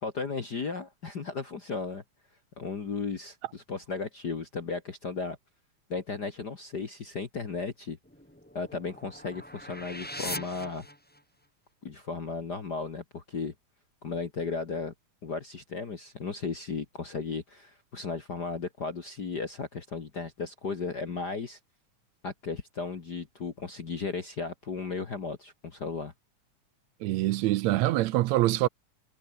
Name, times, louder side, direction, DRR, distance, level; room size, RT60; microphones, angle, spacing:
voice 1, 0.0-2.0 2.6-5.4 5.9-8.0 8.5-10.8 11.8-13.5 14.0-14.9 15.2-21.6 22.2-26.1, left 4 dB, 40° left, 2.0 m, -35 dB
sound 1, 8.0-11.5, equal, 5° left, 5.0 m, -41 dB
voice 2, 27.0-28.7, right 16 dB, 75° right, 1.9 m, -25 dB
omnidirectional pair, 3.4 m